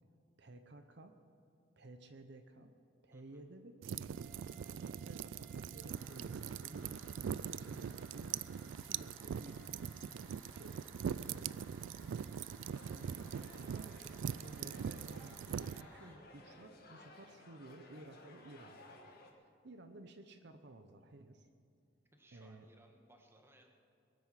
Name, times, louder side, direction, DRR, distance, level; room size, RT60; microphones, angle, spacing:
voice 1, 0.4-1.1 1.8-2.7 3.0-9.9 10.5-10.8 11.2-11.7 12.9-21.5 22.3-22.7, right 2 dB, 65° right, 7 dB, 0.9 m, -55 dB
voice 2, 3.1-3.4 22.1-23.7, right 1 dB, 15° right, 2 dB, 1.6 m, -65 dB
sound 1, 3.8-15.8, right 8 dB, 90° right, 0.3 m, -42 dB
sound 2, 4.1-16.1, left 1 dB, 10° left, 2.9 m, -61 dB
sound 3, 12.7-19.3, left 1 dB, 55° left, 1.7 m, -58 dB
21.5 x 9.5 x 5.8 m, 2.6 s
head